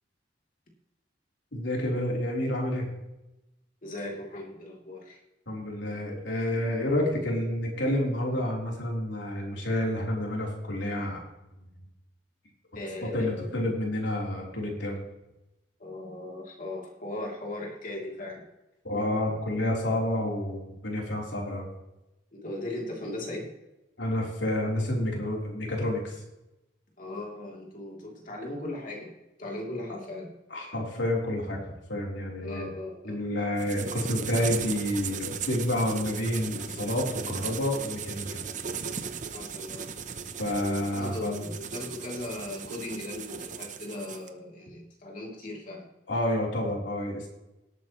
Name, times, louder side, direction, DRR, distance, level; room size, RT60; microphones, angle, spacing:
voice 1, 1.5-2.9 5.5-11.2 13.1-15.0 18.8-21.7 24.0-26.1 30.5-31.6 31.9-32.7 33.0-38.4 40.4-41.5 46.1-47.3, left 1 dB, 80° left, -2 dB, 3.7 m, -29 dB
voice 2, 3.8-5.2 12.7-13.6 15.8-18.4 22.3-23.5 27.0-29.1 29.4-30.3 32.4-33.2 39.3-39.9 40.6-45.9, left 1 dB, 45° left, -1 dB, 3.0 m, -38 dB
sound 1, 33.6-44.3, right 6 dB, 40° right, 0.8 m, -37 dB
18.0 x 8.8 x 3.1 m, 0.96 s
head